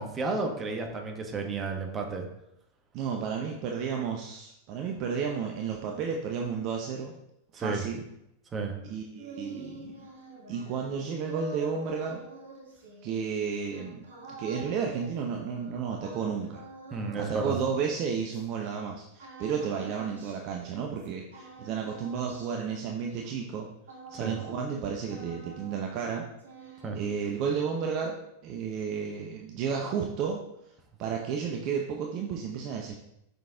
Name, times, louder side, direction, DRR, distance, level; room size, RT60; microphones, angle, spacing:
voice 1, 0.0-2.3 7.5-7.8 8.5-8.8 16.9-17.6 24.1-24.4 26.8-27.0, right 3 dB, 20° right, 3 dB, 1.5 m, -32 dB
voice 2, 2.9-7.2 7.5-8.1 8.8-10.1 10.5-12.2 13.0-16.6 17.2-23.7 24.1-26.2 26.9-28.2 28.4-30.4 31.0-32.9, right 6 dB, 40° right, 1 dB, 0.9 m, -32 dB
sound 1, 8.9-18.7 19.2-21.1 21.3-24.8 25.1-26.1 26.4-27.4, right 2 dB, 65° right, 1.9 m, -47 dB
6.9 x 6.1 x 3.7 m, 0.81 s
figure-of-eight pair, 90°, 0 cm